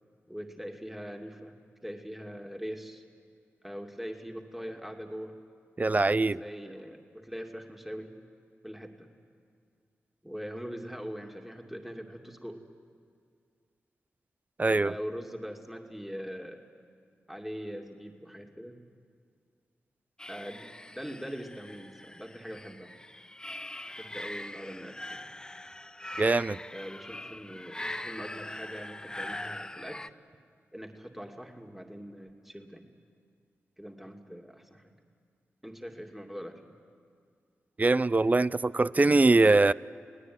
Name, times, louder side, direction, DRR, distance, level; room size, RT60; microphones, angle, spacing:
voice 1, 0.3-3.0 3.6-5.4 6.4-8.2 8.6-9.1 10.2-12.6 14.8-16.6 17.3-18.8 20.3-22.9 23.9-25.3 26.7-30.1 30.7-32.9 33.8-34.8 35.6-36.7, equal, 5° right, 2.6 m, -42 dB
voice 2, 5.8-6.4 14.6-14.9 26.2-26.6 37.8-39.7, right 3 dB, 30° right, 0.5 m, -22 dB
sound 1, 20.2-30.1, left 1 dB, 15° left, 0.7 m, -42 dB
28.5 x 18.0 x 9.6 m
supercardioid pair, 40°, 5 cm